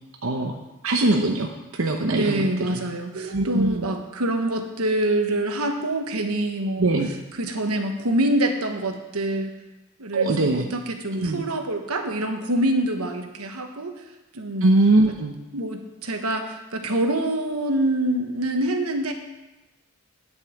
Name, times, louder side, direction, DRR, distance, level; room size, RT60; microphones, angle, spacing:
voice 1, 0.2-0.5 0.8-1.5 1.8-2.8 3.1-3.9 6.8-7.1 10.1-10.7 11.1-11.4 14.6-15.3, right 2 dB, 65° right, 2 dB, 0.9 m, -21 dB
voice 2, 2.1-6.9 7.4-9.5 10.0-13.9 14.3-14.7 15.5-19.1, right 1 dB, 90° right, 4 dB, 1.2 m, -25 dB
9.8 x 5.5 x 7.8 m, 1.0 s
head